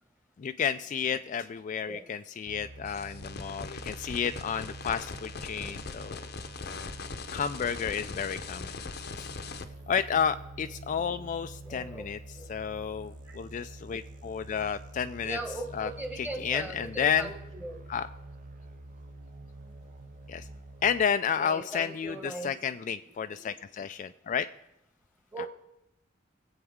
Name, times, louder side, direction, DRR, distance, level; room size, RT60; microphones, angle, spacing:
voice 1, 0.4-6.3 7.3-8.7 9.2-9.3 9.9-12.2 12.5-15.4 15.7-15.9 16.2-17.3 17.9-18.1 20.3-20.5 20.8-24.5 25.4-25.5, left 7 dB, 40° left, 10 dB, 0.3 m, -31 dB
sound 1, 2.5-21.0, right 2 dB, 45° right, 0.6 m, -46 dB
sound 2, 2.9-9.6, left 4 dB, 55° left, 0.7 m, -41 dB
voice 2, 11.6-12.1 12.3-12.4 13.2-13.4 15.2-17.8 21.4-22.5 23.3-23.4 25.3-25.5, right 2 dB, 10° right, 3 dB, 1.5 m, -39 dB
21.0 x 8.0 x 3.6 m, 0.84 s
head